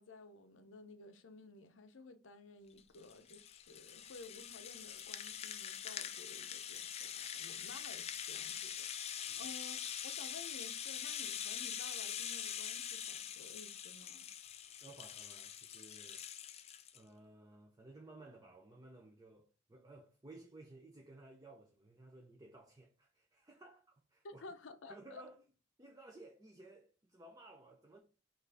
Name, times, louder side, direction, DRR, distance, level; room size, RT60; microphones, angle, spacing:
voice 1, 0.0-14.3 24.2-25.2, left 3 dB, 80° left, 0.7 m, -54 dB
Rattle (instrument), 2.8-17.0, left 9 dB, 35° left, 0.3 m, -44 dB
voice 2, 14.8-16.2 16.9-24.4 24.9-25.4 25.8-28.0, right 2 dB, 20° right, 0.6 m, -57 dB
5.9 x 2.6 x 3.4 m
head